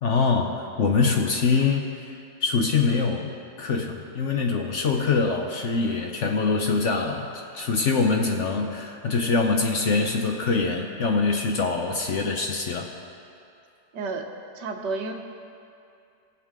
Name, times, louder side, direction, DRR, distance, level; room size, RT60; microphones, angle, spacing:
voice 1, 0.0-12.9, left 4 dB, 55° left, 2 dB, 0.9 m, -24 dB
voice 2, 13.9-14.3 14.5-15.1, right 3 dB, 80° right, 3 dB, 1.6 m, -30 dB
20.0 x 7.4 x 3.7 m, 2.5 s
omnidirectional pair, 1.8 m